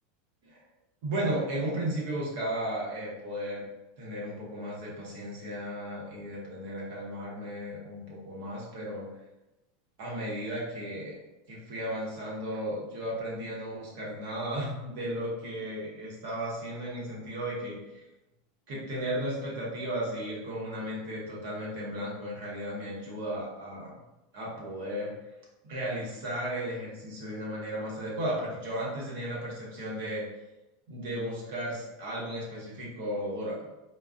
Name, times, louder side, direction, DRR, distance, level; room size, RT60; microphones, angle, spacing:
voice 1, 1.0-3.6 4.0-9.1 10.0-11.2 11.5-18.0 18.7-23.9 24.3-25.1 25.6-30.2 30.9-33.7, right 1 dB, 65° right, -5 dB, 1.0 m, -35 dB
2.4 x 2.2 x 2.4 m, 1.0 s
hypercardioid pair, 90°, 0 cm